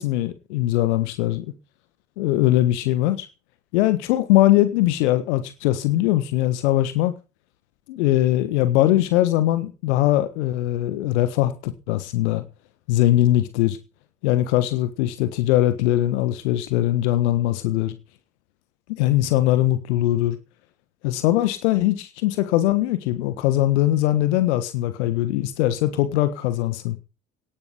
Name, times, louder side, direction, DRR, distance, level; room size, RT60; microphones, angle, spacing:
voice 1, 0.0-1.4 2.2-3.3 3.7-7.1 7.9-12.4 12.9-13.8 14.2-17.9 19.0-20.4 21.0-27.0, left 14 dB, 65° left, 12 dB, 1.5 m, -21 dB
18.5 x 10.5 x 5.2 m, 0.32 s
figure-of-eight pair, 55°, 37 cm